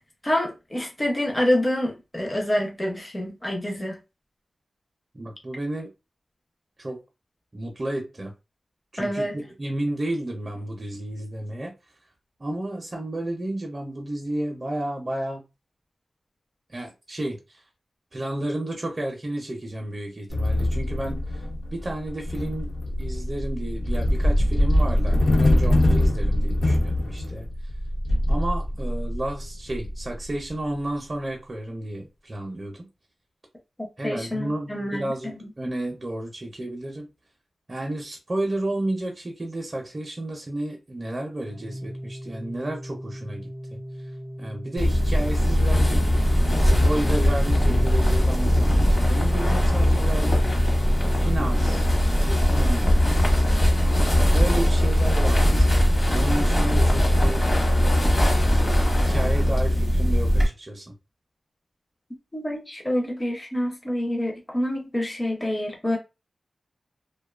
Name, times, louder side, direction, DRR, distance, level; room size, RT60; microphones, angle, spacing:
voice 1, 0.2-4.0 9.0-9.4 33.8-35.5 62.3-66.0, left 1 dB, 20° left, 0.6 m, -27 dB
voice 2, 5.1-5.9 6.8-7.0 7.5-8.3 8.9-11.7 12.4-15.4 16.7-17.6 18.1-21.4 21.7-22.7 23.0-27.5 28.3-32.9 34.0-37.1 37.7-43.8 44.4-46.0 46.5-50.7 51.2-51.9 52.2-52.9 54.3-57.5 58.3-60.9, right 1 dB, 35° right, 0.5 m, -32 dB
sound 1, 20.3-30.5, left 1 dB, 60° left, 0.6 m, -23 dB
Organ, 41.4-52.3, equal, 75° left, 1.0 m, -38 dB
sound 2, 44.8-60.5, equal, 40° left, 1.0 m, -20 dB
2.5 x 2.2 x 2.3 m
wide cardioid pair, 90°, 0 cm